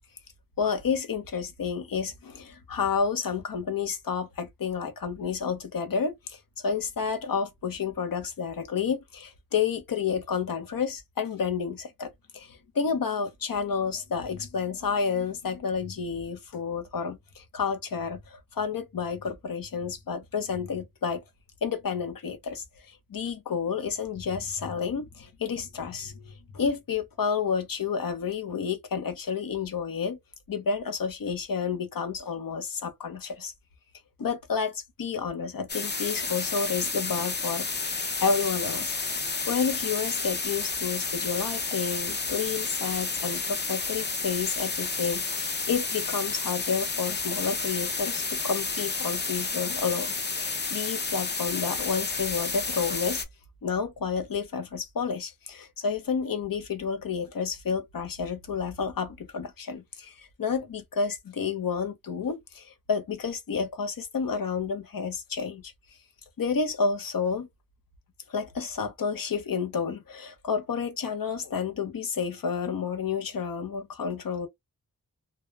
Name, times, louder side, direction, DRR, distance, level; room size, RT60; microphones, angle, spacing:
voice 1, 0.6-21.2 21.6-30.2 30.5-33.5 34.2-38.9 39.5-53.2 53.6-65.7 66.4-67.5 68.3-74.5, left 6 dB, 75° left, 0.7 m, -30 dB
sound 1, 35.7-53.2, left 4 dB, 30° left, 0.5 m, -31 dB
2.2 x 2.0 x 3.2 m
wide cardioid pair, 60°, 34 cm